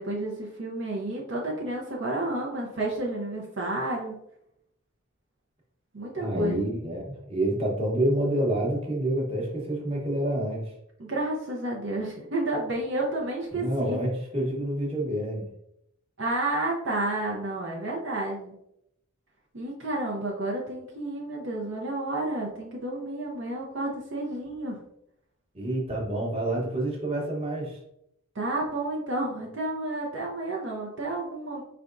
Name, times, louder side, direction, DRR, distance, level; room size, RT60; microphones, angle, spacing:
voice 1, 0.0-4.2 5.9-6.6 11.0-14.0 16.2-18.6 19.5-24.8 28.3-31.6, right 2 dB, 55° right, -2 dB, 0.7 m, -31 dB
voice 2, 6.2-10.7 13.5-15.5 25.5-27.8, right 1 dB, 25° right, -2 dB, 1.0 m, -28 dB
4.6 x 3.4 x 2.5 m, 0.77 s
head